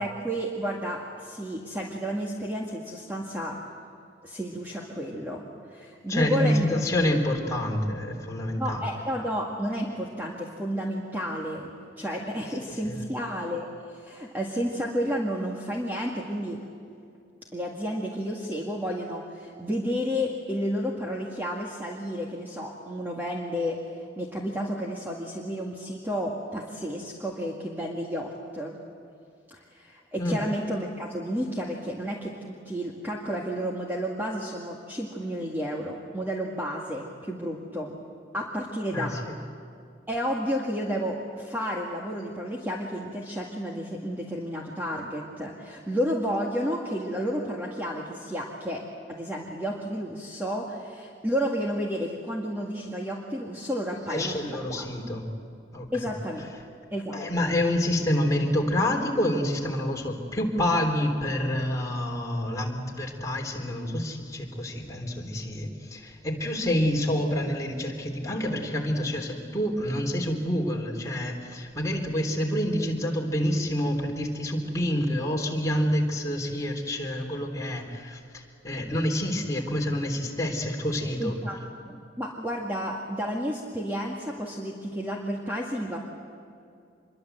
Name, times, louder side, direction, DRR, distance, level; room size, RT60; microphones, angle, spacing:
voice 1, 0.0-3.6 4.2-6.7 8.6-11.7 12.0-16.6 17.5-28.8 29.5-38.0 38.3-39.1 40.1-48.8 49.1-54.9 55.9-56.4 56.9-57.2 81.2-81.6 81.9-86.0, equal, 10° right, -2 dB, 2.0 m, -31 dB
voice 2, 6.1-9.0 12.7-13.0 30.2-30.4 38.9-39.4 54.0-55.3 55.7-56.1 56.4-56.6 57.1-81.4, left 1 dB, 15° left, 0 dB, 3.5 m, -28 dB
26.0 x 22.5 x 8.1 m, 2.4 s
head